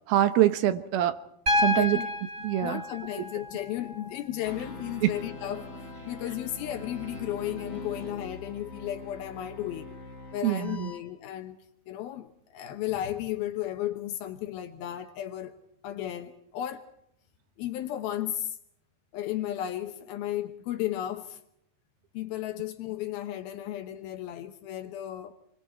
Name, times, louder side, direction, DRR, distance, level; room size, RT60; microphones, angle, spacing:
voice 1, 0.1-1.2 1.5-2.0 2.4-2.8 5.0-5.1 10.4-10.9, right 13 dB, 80° right, 3.0 m, -24 dB
Piano, 1.5-5.5 7.0-7.1, left 1 dB, 25° right, 2.1 m, -31 dB
voice 2, 1.7-2.1 2.4-10.0 10.3-11.6 11.9-15.6 15.8-16.8 17.6-18.6 19.1-21.4 22.1-25.3, left 12 dB, 80° left, 2.9 m, -34 dB
sound 1, 4.4-11.0, left 1 dB, 25° left, 5.2 m, -43 dB
29.0 x 22.0 x 4.5 m
omnidirectional pair, 4.3 m